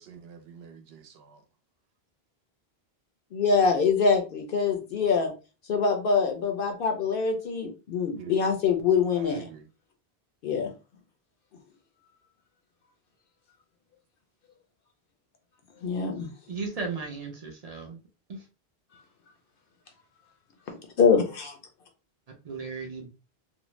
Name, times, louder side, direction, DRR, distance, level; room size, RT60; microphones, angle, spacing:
voice 1, 0.0-1.4 8.1-8.4 9.1-9.7, right 7 dB, 70° right, 0.8 m, -46 dB
voice 2, 3.3-5.3 5.7-9.5 10.4-10.7 15.8-16.3 21.0-21.6, left 5 dB, 65° left, 0.7 m, -24 dB
voice 3, 16.5-18.0 18.3-18.4 22.5-23.1, right 4 dB, 50° right, 0.5 m, -35 dB
2.6 x 2.1 x 3.0 m
omnidirectional pair, 1.1 m